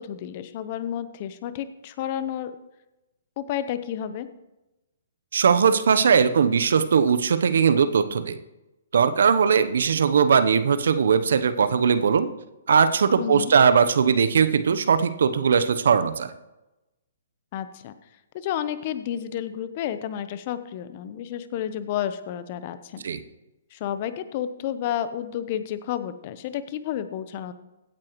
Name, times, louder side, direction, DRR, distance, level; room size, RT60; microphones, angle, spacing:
voice 1, 0.0-2.5 3.4-4.3 13.2-13.5 17.5-17.9 18.3-23.0 23.7-27.5, left 10 dB, 40° left, 12 dB, 0.9 m, -31 dB
voice 2, 5.3-8.4 8.9-12.3 12.7-16.3 23.0-23.2, right 6 dB, 70° right, 12 dB, 0.9 m, -20 dB
16.0 x 8.8 x 3.1 m, 0.98 s
hypercardioid pair, 135°, 0 cm